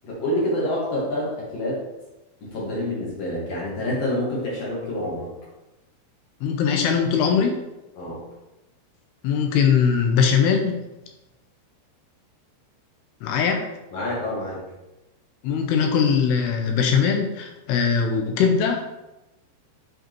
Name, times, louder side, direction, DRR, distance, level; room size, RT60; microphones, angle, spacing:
voice 1, 0.0-1.8 2.4-5.3 8.0-8.2 13.9-14.6, left 1 dB, 55° left, -4 dB, 2.0 m, -27 dB
voice 2, 6.4-7.6 9.2-10.9 13.2-13.7 15.4-18.8, left 6 dB, 80° left, 4 dB, 2.7 m, -21 dB
7.9 x 5.0 x 3.0 m, 1.0 s
omnidirectional pair, 5.0 m